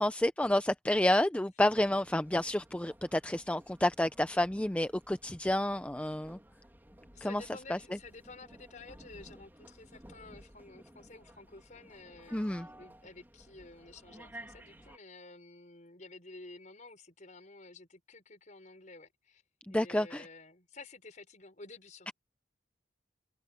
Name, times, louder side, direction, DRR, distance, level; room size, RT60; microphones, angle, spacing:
voice 1, 0.0-6.4 7.2-7.4 7.7-8.0 12.3-12.7 19.7-20.3, left 1 dB, 5° left, 0.5 m, -29 dB
sound 1, 1.7-15.0, right 1 dB, 10° right, 3.0 m, -55 dB
voice 2, 7.1-19.4 19.7-22.1, left 3 dB, 45° left, 5.0 m, -52 dB
head